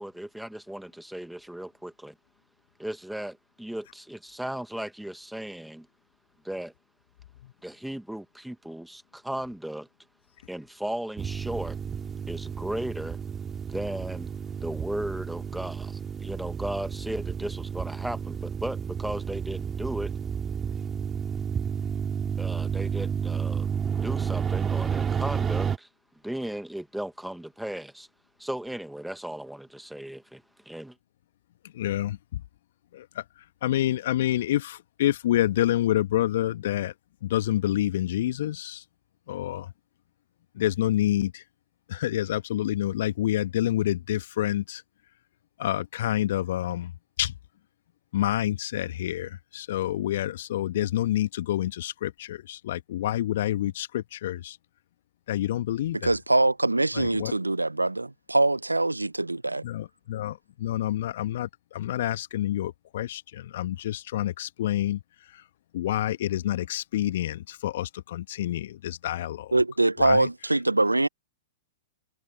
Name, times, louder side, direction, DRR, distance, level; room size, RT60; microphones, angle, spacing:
voice 1, 0.0-2.1 2.8-5.9 6.4-6.7 7.6-9.9 10.5-11.8 12.3-13.2 13.7-14.3 14.6-20.1 22.4-25.9 26.2-28.1 28.4-31.0, right 1 dB, ahead, 1.9 m, -36 dB
sound 1, 11.2-25.8, right 7 dB, 20° right, 3.2 m, -31 dB
voice 2, 31.7-32.4 32.9-33.2 33.6-36.9 37.2-38.8 39.3-39.7 40.5-41.4 41.9-44.8 45.6-46.9 47.2-47.3 48.1-54.6 55.3-56.1 56.9-57.3 59.6-65.0 65.3-65.4 65.7-69.6 70.0-70.3, left 13 dB, 55° left, 1.7 m, -28 dB
voice 3, 56.0-59.6 69.5-71.1, right 2 dB, 90° right, 1.2 m, -23 dB
figure-of-eight pair, 105°, 0 cm